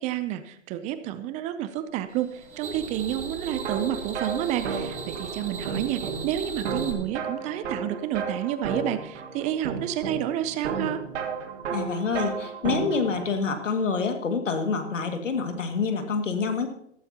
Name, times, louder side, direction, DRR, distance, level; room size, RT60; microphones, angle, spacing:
voice 1, 0.0-2.3 2.6-11.0, right 12 dB, 20° right, 12 dB, 0.5 m, -30 dB
sound 1, 2.1-6.9, right 5 dB, 45° right, 3.2 m, -37 dB
sound 2, 3.5-13.3, right 5 dB, 70° right, 2.2 m, -33 dB
voice 2, 11.7-16.7, left 5 dB, 85° left, 6 dB, 2.2 m, -27 dB
14.5 x 14.0 x 2.9 m, 0.70 s
hypercardioid pair, 125°, 37 cm